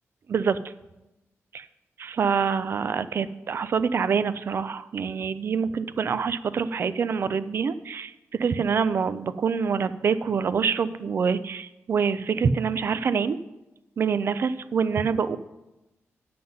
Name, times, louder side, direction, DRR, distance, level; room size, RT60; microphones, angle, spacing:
voice 1, 0.3-0.6 1.5-1.7 2.0-13.4 14.0-15.4, right 6 dB, 50° right, 14 dB, 0.4 m, -26 dB
9.5 x 7.6 x 5.4 m, 0.98 s
wide cardioid pair, 140°, 5 cm